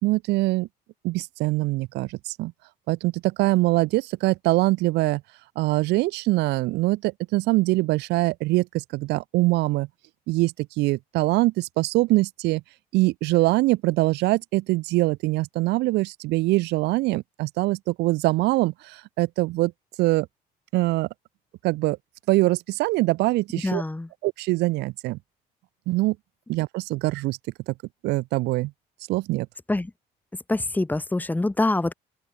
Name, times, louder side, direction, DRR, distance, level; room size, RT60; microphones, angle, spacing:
voice 1, 0.0-0.7 1.0-2.5 2.9-5.2 5.6-9.9 10.3-12.6 12.9-19.7 20.0-20.3 20.7-21.1 21.6-22.0 22.3-23.8 24.2-25.2 25.9-26.2 26.5-27.4 27.7-27.8 28.0-28.7 29.1-29.5, right 20 dB, 90° right, 1.1 m, -23 dB
voice 2, 23.6-24.1 29.7-29.9 30.5-31.9, left 2 dB, 10° left, 2.5 m, -25 dB
open air
cardioid pair, 110°, 17 cm